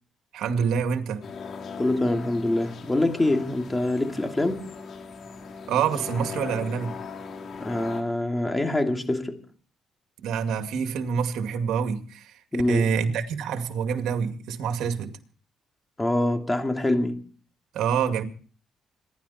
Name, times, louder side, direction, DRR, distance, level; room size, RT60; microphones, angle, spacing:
voice 1, 0.3-1.2 5.7-6.9 10.2-15.2 17.7-18.2, right 7 dB, 80° right, 2.3 m, -27 dB
sound 1, 1.2-8.0, left 5 dB, 60° left, 3.8 m, -39 dB
voice 2, 1.8-4.7 7.6-9.4 12.5-12.9 16.0-17.2, left 1 dB, 15° left, 2.7 m, -25 dB
26.5 x 11.5 x 4.3 m
cardioid pair, 90°, 0 cm